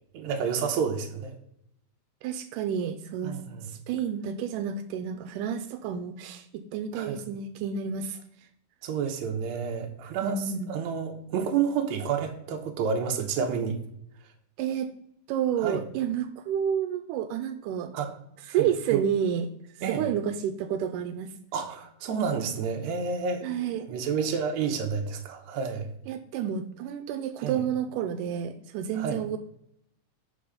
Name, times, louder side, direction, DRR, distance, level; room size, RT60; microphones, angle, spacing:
voice 1, 0.1-1.4 3.2-3.7 6.9-7.2 8.8-13.8 15.6-15.8 17.9-18.1 18.5-19.0 19.8-20.0 21.5-25.9 27.4-27.6 28.9-29.2, right 6 dB, 70° right, 4 dB, 2.2 m, -30 dB
voice 2, 2.2-3.4 3.7-8.2 10.2-10.7 14.6-14.9 15.3-17.9 18.5-19.5 19.9-21.3 23.4-23.9 26.1-29.4, right 8 dB, 85° right, 7 dB, 2.1 m, -30 dB
7.0 x 5.8 x 5.0 m, 0.75 s
omnidirectional pair, 3.7 m